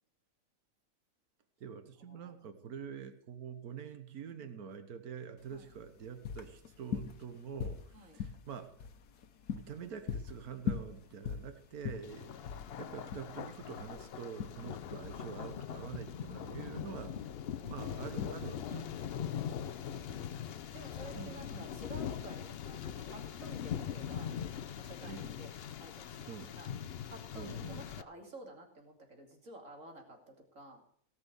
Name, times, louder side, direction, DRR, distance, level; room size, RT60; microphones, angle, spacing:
voice 1, 1.6-8.7 9.5-12.3 12.8-17.1 17.7-18.9 21.1-21.7 25.1-25.3 26.3-26.5 27.3-27.8, right 7 dB, 75° right, 9 dB, 1.6 m, -46 dB
sound 1, 5.4-21.0, left 7 dB, 80° left, 1.4 m, -43 dB
Thunder, 12.0-28.0, left 9 dB, 55° left, 0.7 m, -42 dB
voice 2, 19.1-20.5 20.7-24.3 24.7-25.5 25.8-26.7 27.1-30.8, right 1 dB, 55° right, 2 dB, 3.1 m, -52 dB
18.5 x 6.2 x 8.1 m, 0.62 s
omnidirectional pair, 1.6 m